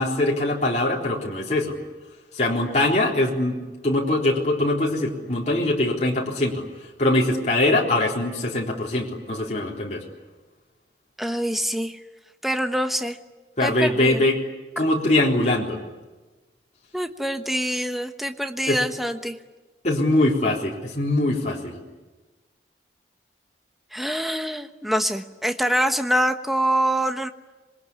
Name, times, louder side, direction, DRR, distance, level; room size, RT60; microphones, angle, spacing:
voice 1, 0.0-1.8 2.3-6.6 7.0-10.0 13.6-14.4 14.8-15.8 18.7-18.8 19.8-21.8, left 1 dB, 40° left, -3 dB, 3.9 m, -22 dB
voice 2, 11.2-12.0 12.4-13.2 13.6-14.2 16.9-19.4 23.9-27.3, equal, ahead, 7 dB, 1.1 m, -25 dB
26.5 x 22.0 x 9.8 m, 1.2 s
head